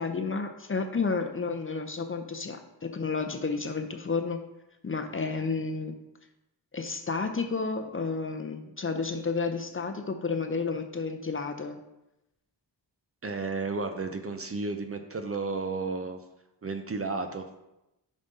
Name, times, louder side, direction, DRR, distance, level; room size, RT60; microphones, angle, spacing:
voice 1, 0.0-4.4 4.8-5.9 6.7-11.7, left 4 dB, 30° left, 6 dB, 0.6 m, -31 dB
voice 2, 13.2-16.2 16.6-17.5, right 3 dB, 30° right, 7 dB, 0.5 m, -32 dB
7.1 x 5.3 x 4.1 m, 0.91 s
wide cardioid pair, 115°, 44 cm